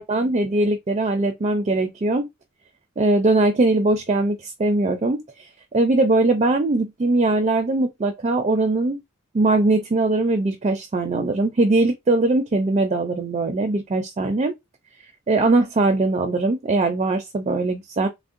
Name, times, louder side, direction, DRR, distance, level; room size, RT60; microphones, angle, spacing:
voice 1, 0.0-2.3 3.0-5.5 5.7-9.0 9.3-14.5 15.3-18.1, right 2 dB, 30° right, 0.4 m, -21 dB
3.5 x 2.1 x 2.5 m
head